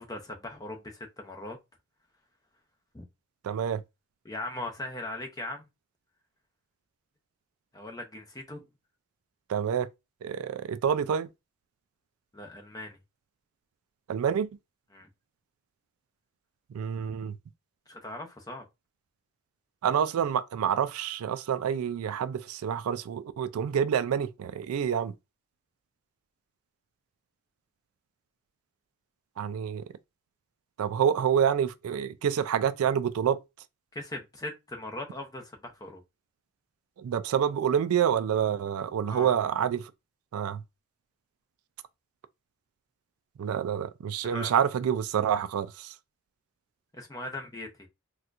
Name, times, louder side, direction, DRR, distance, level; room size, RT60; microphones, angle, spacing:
voice 1, 0.0-1.6 2.9-3.0 4.2-5.7 7.7-8.6 12.3-13.0 14.9-15.1 17.9-18.6 33.9-36.0 39.1-39.4 44.3-44.5 46.9-47.9, left 2 dB, 15° left, 0.6 m, -39 dB
voice 2, 3.4-3.8 9.5-9.9 10.2-11.3 14.1-14.5 16.7-17.4 19.8-25.1 29.4-29.8 30.8-33.4 37.0-39.8 40.3-40.6 43.4-45.9, right 8 dB, 75° right, 0.3 m, -27 dB
4.2 x 2.3 x 2.4 m
head